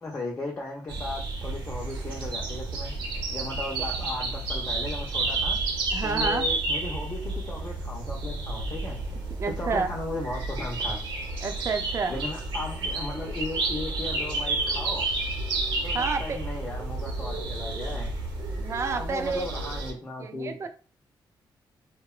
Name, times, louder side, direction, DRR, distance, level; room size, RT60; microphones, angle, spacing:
voice 1, 0.0-5.6 6.0-9.0 9.4-11.0 12.1-15.1 15.8-18.1 18.9-20.6, left 2 dB, 25° left, -1 dB, 0.5 m, -36 dB
sound 1, 0.9-19.9, right 2 dB, 80° right, 0.8 m, -31 dB
voice 2, 5.9-6.5 9.4-9.9 11.4-12.2 15.9-16.4 18.6-19.5 20.2-20.7, right 4 dB, 35° right, 7 dB, 0.3 m, -29 dB
2.8 x 2.1 x 2.3 m, 0.37 s
wide cardioid pair, 160°, 8 cm